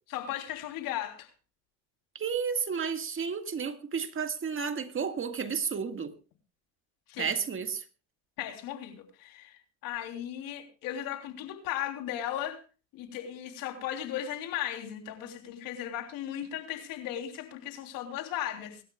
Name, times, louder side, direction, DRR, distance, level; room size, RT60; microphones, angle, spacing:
voice 1, 0.1-1.3 7.1-7.4 8.4-12.6 12.9-18.8, left 11 dB, 70° left, 3.4 m, -36 dB
voice 2, 2.2-6.1 7.2-7.8, right 6 dB, 35° right, 1.8 m, -32 dB
25.5 x 12.5 x 2.3 m
supercardioid pair, 85°, 35 cm